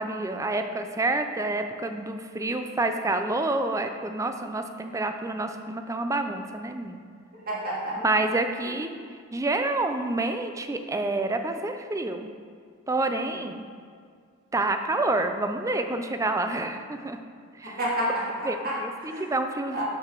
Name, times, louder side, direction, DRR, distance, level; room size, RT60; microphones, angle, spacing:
voice 1, 0.0-7.0 8.0-12.3 12.9-13.6 14.5-17.2 17.6-17.8 18.4-19.8, right 2 dB, 15° right, 7 dB, 0.4 m, -28 dB
voice 2, 7.5-8.0 17.6-18.8 19.1-19.2 19.7-19.8, right 1 dB, 45° right, -6 dB, 1.9 m, -29 dB
6.2 x 4.8 x 6.0 m, 2.1 s
head